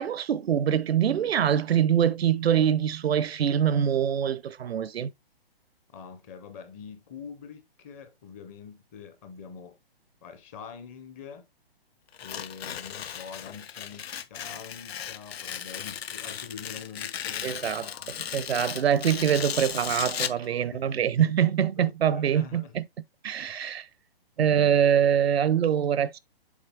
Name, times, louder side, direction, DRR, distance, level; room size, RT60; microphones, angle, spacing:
voice 1, 0.0-5.1 17.4-17.9 18.3-22.8 23.2-23.9 24.4-26.2, right 9 dB, 80° right, 0.7 m, -24 dB
voice 2, 5.9-9.8 10.2-11.5 12.2-18.1 20.4-21.1 21.8-22.7 23.4-23.6 24.4-24.9, left 6 dB, 15° left, 0.5 m, -45 dB
Tearing, 12.1-20.5, left 9 dB, 85° left, 0.6 m, -36 dB
7.2 x 3.9 x 3.3 m
hypercardioid pair, 150°, 30 cm